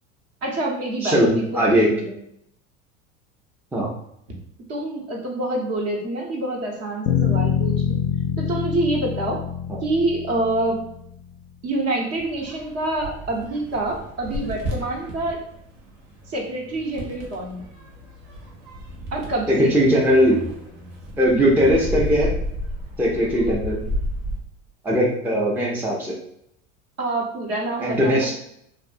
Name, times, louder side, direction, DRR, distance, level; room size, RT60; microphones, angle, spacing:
voice 1, 0.4-2.1 4.7-8.0 8.4-9.4 9.8-10.8 11.6-15.4 16.3-17.6 19.1-19.7 27.0-28.3, right 2 dB, 40° right, -1 dB, 0.9 m, -26 dB
voice 2, 1.5-1.9 3.7-3.9 9.7-9.8 19.5-20.4 21.2-22.3 23.0-23.8 24.8-26.1 27.8-28.3, equal, 5° right, -4 dB, 0.4 m, -19 dB
sound 1, 7.1-11.1, left 7 dB, 55° left, 0.4 m, -25 dB
sound 2, 12.2-24.4, equal, 75° right, 0.9 m, -33 dB
2.6 x 2.5 x 2.4 m, 0.73 s
hypercardioid pair, 85°, 39 cm